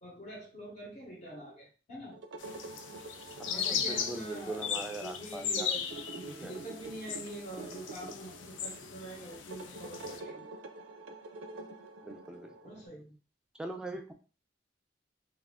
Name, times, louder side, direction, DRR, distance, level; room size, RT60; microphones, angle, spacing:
voice 1, 0.0-2.2 3.5-5.8 6.1-10.5 12.6-13.2, right 1 dB, 40° left, -4 dB, 0.8 m, -45 dB
sound 1, 2.1-12.9, right 3 dB, 75° right, 0.4 m, -47 dB
sound 2, 2.4-10.2, left 7 dB, 85° left, 0.4 m, -38 dB
voice 2, 3.5-5.8 6.2-6.5 12.0-12.5 13.6-14.1, right 2 dB, 5° right, 5 dB, 0.3 m, -41 dB
2.4 x 2.3 x 3.5 m, 0.36 s
head